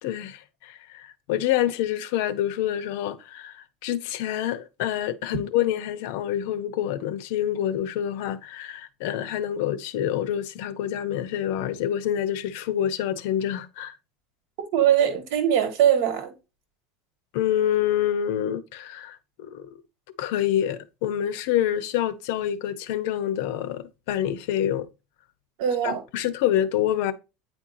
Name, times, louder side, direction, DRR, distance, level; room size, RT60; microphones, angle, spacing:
voice 1, 0.0-14.0 17.3-19.7 20.2-24.9 25.8-27.1, left 11 dB, 75° left, 0.7 m, -27 dB
voice 2, 14.7-16.3 25.6-26.0, right 9 dB, 70° right, 1.6 m, -21 dB
9.1 x 4.4 x 2.6 m
cardioid pair, 165°, 0 cm